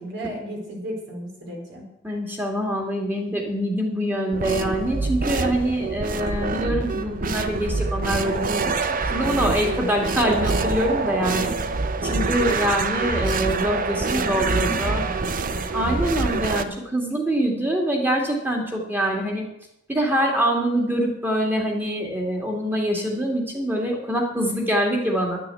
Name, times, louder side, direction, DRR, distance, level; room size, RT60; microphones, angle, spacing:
voice 1, 0.0-1.9 13.9-16.4, right 1 dB, 60° right, 0 dB, 4.2 m, -34 dB
voice 2, 2.0-8.7 9.0-11.5 12.0-15.0 15.7-19.4 19.9-25.4, equal, 10° right, 0 dB, 2.5 m, -24 dB
sound 1, 4.3-16.6, right 4 dB, 45° right, 0.7 m, -25 dB
10.5 x 9.3 x 7.8 m, 0.84 s
head